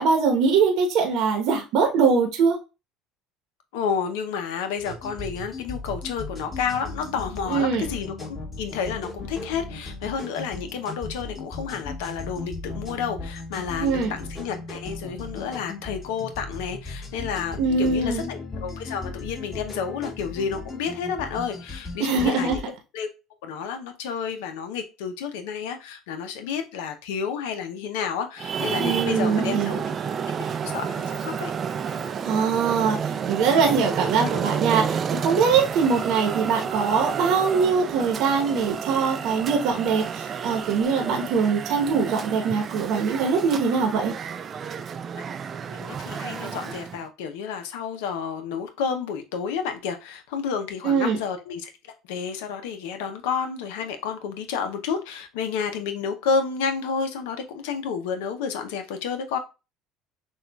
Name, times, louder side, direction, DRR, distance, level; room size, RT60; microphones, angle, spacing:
voice 1, 0.0-2.6 7.5-7.9 13.8-14.1 17.6-18.3 22.0-22.6 28.8-29.8 32.2-44.2 50.8-51.2, right 5 dB, 70° right, 0.9 m, -22 dB
voice 2, 3.7-22.6 22.9-23.1 23.4-29.8 30.6-31.5 45.7-59.4, left 6 dB, 90° left, 0.6 m, -30 dB
sound 1, 4.8-22.6, left 3 dB, 25° left, 1.7 m, -37 dB
Traffic noise roadway noise, 28.4-47.0, right 7 dB, 40° right, 0.3 m, -30 dB
6.1 x 2.3 x 2.3 m
supercardioid pair, 105°, 0 cm